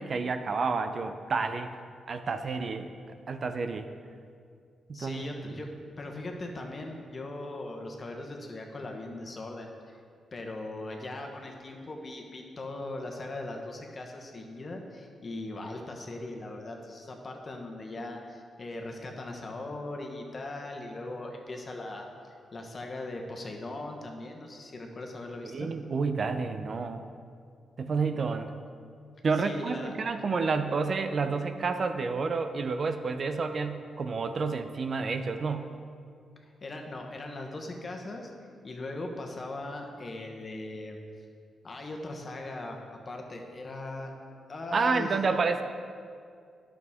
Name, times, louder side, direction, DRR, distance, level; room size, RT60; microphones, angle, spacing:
voice 1, 0.0-1.7 2.1-2.9 3.3-3.9 4.9-5.6 25.4-27.0 27.8-28.5 29.2-35.7 44.7-45.6, right 4 dB, 50° right, 8 dB, 0.5 m, -30 dB
voice 2, 4.9-5.7 6.0-10.0 10.3-22.1 22.5-25.7 29.4-29.9 36.4-38.3 38.6-41.0 41.6-44.1 44.5-45.1, left 2 dB, 40° left, 2 dB, 1.2 m, -39 dB
11.0 x 6.3 x 3.6 m, 2.2 s
cardioid pair, 70°, 0 cm